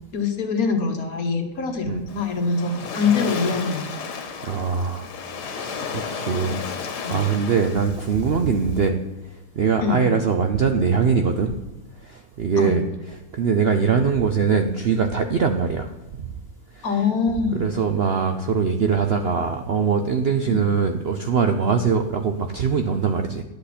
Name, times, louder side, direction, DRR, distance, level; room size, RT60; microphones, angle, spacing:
voice 1, 0.1-3.8 7.0-7.2 9.8-10.2 12.6-12.8 16.8-17.7 20.4-20.6, left 4 dB, 65° left, 5 dB, 1.6 m, -24 dB
Waves surf, 2.1-8.9, left 5 dB, 90° left, 1.6 m, -33 dB
voice 2, 4.4-5.0 5.5-9.0 9.6-11.5 12.4-12.8 13.3-15.9 17.5-23.4, right 5 dB, 60° right, 6 dB, 0.6 m, -22 dB
11.0 x 7.9 x 4.2 m, 1.0 s
omnidirectional pair, 1.7 m